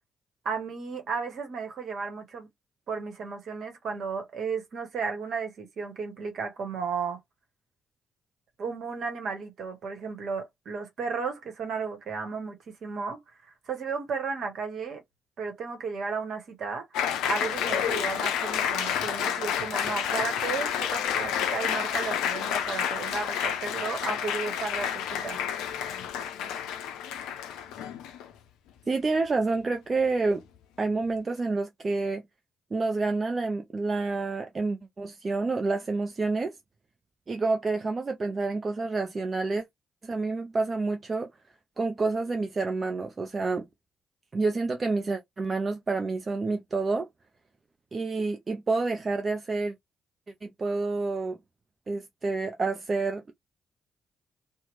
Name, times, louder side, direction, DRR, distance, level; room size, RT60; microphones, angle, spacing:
voice 1, 0.4-2.5 2.9-7.2 8.6-13.2 13.7-15.0 15.4-25.4, right 5 dB, 60° right, 1.0 m, -34 dB
Applause, 16.9-28.3, left 9 dB, 70° left, 0.4 m, -30 dB
voice 2, 28.9-30.4 30.8-32.2 32.7-36.6 37.3-39.6 40.0-41.3 41.8-43.7 44.3-47.1 47.9-49.7 50.4-51.4 51.9-53.3, right 3 dB, 40° right, 0.5 m, -28 dB
2.9 x 2.1 x 3.0 m
figure-of-eight pair, 40°, 0 cm